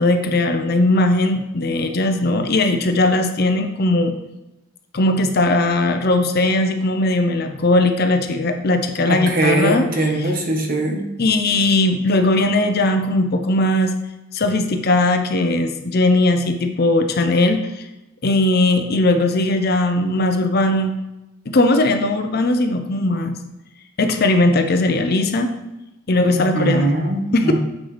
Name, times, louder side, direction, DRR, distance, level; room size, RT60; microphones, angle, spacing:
voice 1, 0.0-4.1 4.9-9.8 11.2-13.9 14.3-17.6 18.2-21.0 21.5-23.3 24.0-25.5 26.1-26.9 27.3-27.5, left 2 dB, 50° left, 6 dB, 0.6 m, -18 dB
voice 2, 9.1-11.0 26.3-27.6, right 2 dB, 45° right, 2 dB, 1.2 m, -21 dB
7.4 x 6.4 x 3.3 m, 0.94 s
head